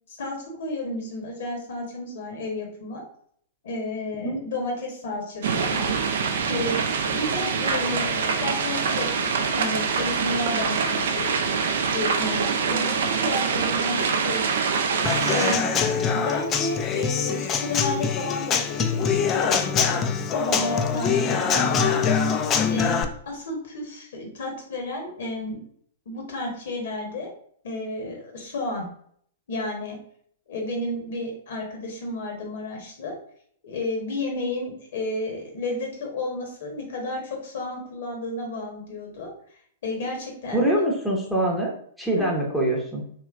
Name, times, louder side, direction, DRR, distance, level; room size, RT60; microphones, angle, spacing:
voice 1, 0.1-3.0 3.6-5.9 6.5-6.8 7.1-9.3 9.5-11.3 11.9-14.5 15.3-15.7 16.1-22.0 22.6-25.6 26.1-27.3 27.6-28.9 29.5-30.0 30.5-33.2 33.6-39.3 39.8-40.6, left 2 dB, 60° left, 1 dB, 1.1 m, -32 dB
sound 1, 5.4-15.6, right 5 dB, 60° right, 0.4 m, -25 dB
Human voice / Acoustic guitar / Drum, 15.1-23.0, left 6 dB, 25° left, 0.3 m, -24 dB
voice 2, 40.5-41.7 42.0-43.0, right 1 dB, ahead, -3 dB, 0.7 m, -24 dB
3.1 x 3.0 x 2.4 m, 0.62 s
figure-of-eight pair, 105°, 0 cm